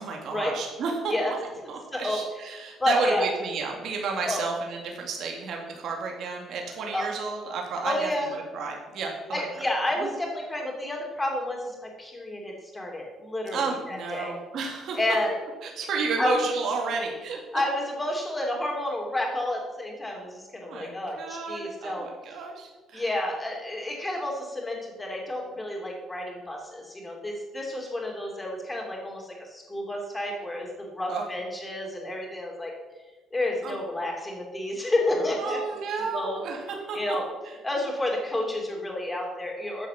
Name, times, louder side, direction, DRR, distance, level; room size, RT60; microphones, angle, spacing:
voice 1, 0.0-1.4 1.7-9.4 13.5-15.0 15.6-17.4 20.7-23.0 31.1-31.2 33.6-33.8 35.4-37.0, right 4 dB, 55° right, 1 dB, 2.3 m, -32 dB
voice 2, 1.9-2.2 2.8-3.3 4.2-4.4 6.9-7.1 7.8-8.3 9.3-14.3 14.9-15.3 16.2-16.4 17.5-22.1 22.9-32.7 33.3-35.6 36.1-36.4 36.9-37.3 37.6-39.9, left 1 dB, 10° left, 0 dB, 2.9 m, -30 dB
13.0 x 7.3 x 6.9 m, 1.3 s
cardioid pair, 155°, 0 cm